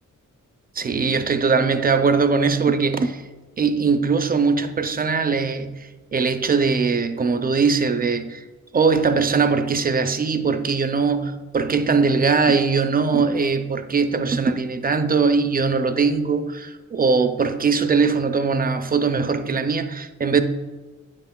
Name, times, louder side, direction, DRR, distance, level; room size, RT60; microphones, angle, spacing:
voice 1, 0.8-3.2 3.6-8.4 8.7-20.4, right 5 dB, 30° right, 0.4 m, -21 dB
9.0 x 5.8 x 2.2 m
wide cardioid pair, 105°, 32 cm